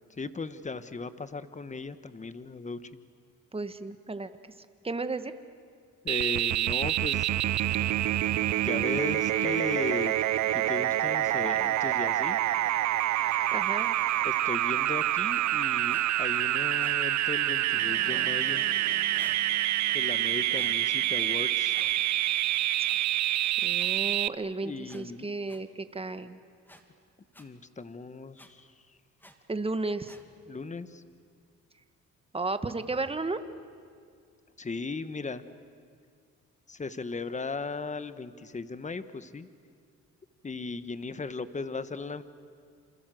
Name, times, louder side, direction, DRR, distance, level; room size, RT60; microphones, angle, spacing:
voice 1, 0.2-3.0 6.0-7.3 8.6-10.1 10.5-12.4 14.2-18.6 19.9-21.8 24.6-25.3 27.4-28.7 30.5-31.0 34.6-35.4 36.7-39.5 40.4-42.2, left 4 dB, 25° left, 12 dB, 1.4 m, -37 dB
voice 2, 3.5-4.3 4.8-5.3 13.5-14.0 23.6-26.4 29.5-30.1 32.3-33.4, right 3 dB, 20° right, 10 dB, 1.5 m, -33 dB
sound 1, 6.1-24.3, right 14 dB, 65° right, 0.6 m, -27 dB
sound 2, 15.9-16.1 16.8-17.0 18.0-18.3 19.1-19.4 20.5-20.8 21.7-21.9 22.9-23.0 23.8-23.9 24.9-25.0 25.5-25.6 26.7-26.8 27.3-27.4 28.4-28.5 29.2-29.3 30.0-30.2, equal, 5° left, 2.5 m, -51 dB
sound 3, 17.7-22.6, equal, 40° right, 7.5 m, -50 dB
28.0 x 27.0 x 7.8 m, 2.2 s
cardioid pair, 90°, 30 cm